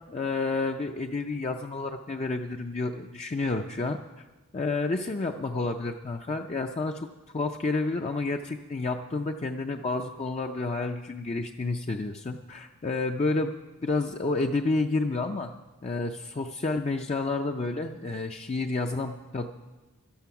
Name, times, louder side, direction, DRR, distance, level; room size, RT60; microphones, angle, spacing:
voice 1, 0.1-4.0 4.5-7.1 7.3-13.5 13.8-15.5 15.8-19.5, left 3 dB, 30° left, 4 dB, 0.4 m, -30 dB
13.0 x 12.0 x 5.8 m, 1.2 s
head